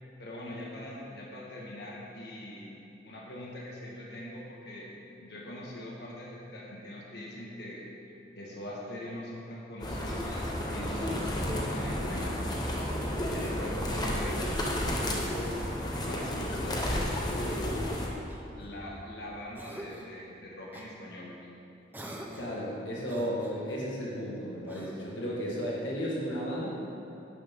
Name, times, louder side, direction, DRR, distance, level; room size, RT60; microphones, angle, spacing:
voice 1, 0.2-2.7 3.0-4.9 5.2-7.8 8.4-12.7 13.3-14.6 15.8-17.9 18.5-21.3, left 1 dB, 60° left, -4 dB, 1.8 m, -42 dB
sound 1, 9.8-18.1, left 1 dB, 20° left, 1.1 m, -32 dB
Cough, 12.5-13.2 14.6-15.7 16.9-17.5 18.3-19.1 19.5-20.2 20.7-20.9 21.9-22.6 23.0-23.8 24.7-25.2, right 1 dB, 10° right, 0.8 m, -47 dB
voice 2, 22.4-26.7, equal, 80° left, -4 dB, 1.7 m, -34 dB
11.5 x 9.8 x 3.8 m, 2.8 s
head